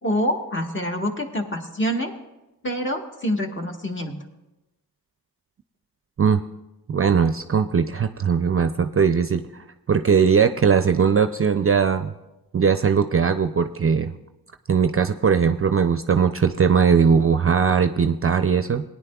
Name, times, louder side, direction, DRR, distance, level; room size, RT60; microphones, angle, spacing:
voice 1, 0.0-2.1 2.6-4.2, equal, 30° left, 2 dB, 1.5 m, -26 dB
voice 2, 6.9-12.1 12.5-14.1 14.7-18.8, right 6 dB, 35° right, 9 dB, 0.5 m, -19 dB
18.0 x 9.8 x 2.3 m, 1.0 s
cardioid pair, 50°, 38 cm